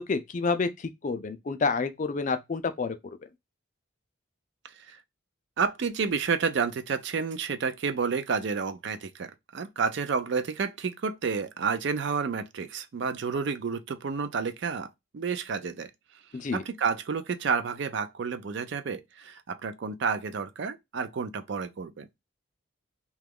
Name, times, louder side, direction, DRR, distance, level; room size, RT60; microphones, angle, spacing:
voice 1, 0.0-3.0 16.3-16.6, left 4 dB, 35° left, 0.3 m, -29 dB
voice 2, 5.6-14.9 15.1-15.9 16.5-22.1, right 5 dB, 55° right, 0.4 m, -30 dB
2.9 x 2.3 x 3.5 m
head